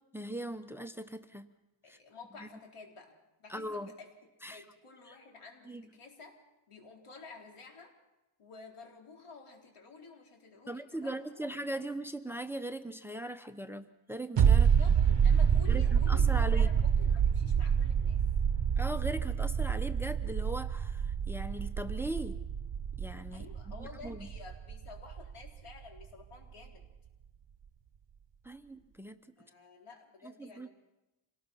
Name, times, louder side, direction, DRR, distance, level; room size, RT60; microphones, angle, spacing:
voice 1, 0.1-1.5 1.9-2.0 2.4-2.5 3.5-3.9 4.4-4.6 5.1-5.2 5.7-5.8 10.7-14.7 15.7-16.7 18.8-22.4 23.0-23.5 23.8-24.3 28.4-29.2 30.2-30.7, right 1 dB, 5° right, 9 dB, 0.8 m, -39 dB
voice 2, 1.8-4.1 4.5-6.4 6.7-7.9 8.4-11.9 14.5-18.2 23.3-26.8 29.4-30.7, left 4 dB, 90° left, 1 dB, 4.2 m, -51 dB
sound 1, 14.4-25.7 26.0-26.1, right 7 dB, 55° right, 1.0 m, -27 dB
26.5 x 19.0 x 5.8 m, 1.0 s
wide cardioid pair, 130°, 50 cm